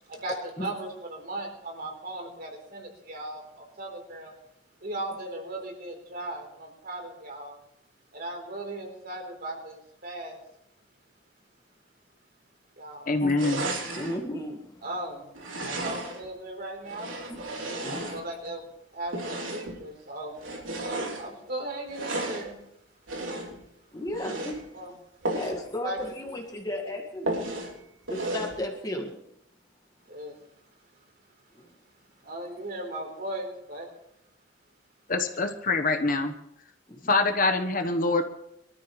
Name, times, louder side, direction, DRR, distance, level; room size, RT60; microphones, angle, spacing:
voice 1, 0.0-4.3 4.8-7.6 8.1-10.4 12.8-13.2 14.8-15.3 15.6-17.1 17.8-18.6 18.9-20.4 21.2-22.6 24.7-24.9 25.4-26.2 30.1-30.4 32.2-33.9 35.1-35.3, right 1 dB, 50° right, 2 dB, 3.9 m, -37 dB
voice 2, 13.1-13.6 35.1-36.3 37.1-38.2, left 3 dB, 45° left, 7 dB, 1.1 m, -24 dB
sound 1, 13.4-14.2 15.3-16.3 16.8-18.5 19.1-19.8 20.4-21.2 21.9-22.5 23.1-23.6 24.1-24.6 25.2-25.6 26.0-26.1 26.4-26.5 27.3-27.7 28.1-28.6, right 2 dB, 90° right, 3.6 m, -33 dB
voice 3, 13.9-14.8 17.3-18.2 23.9-24.8 25.4-27.4 28.1-29.1 31.5-31.7 36.9-37.1, left 1 dB, 20° left, 1 dB, 1.8 m, -35 dB
23.5 x 13.5 x 3.2 m, 0.79 s
head